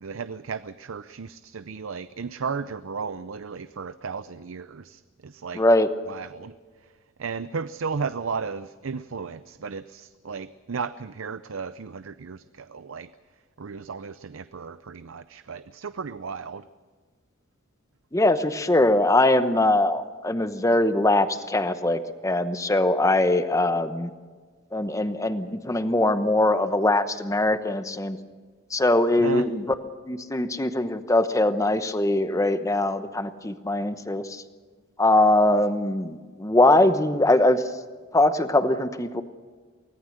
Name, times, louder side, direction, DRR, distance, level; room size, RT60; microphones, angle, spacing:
voice 1, 0.0-5.6 6.1-6.5 7.2-13.1 13.6-16.6 29.2-29.5, right 5 dB, 80° right, 13 dB, 0.6 m, -34 dB
voice 2, 5.5-5.9 18.1-24.1 24.7-28.2 28.7-29.6 30.1-34.4 35.0-37.6 38.1-39.2, left 1 dB, 15° left, 10 dB, 1.0 m, -22 dB
24.5 x 18.0 x 6.6 m, 1.5 s
head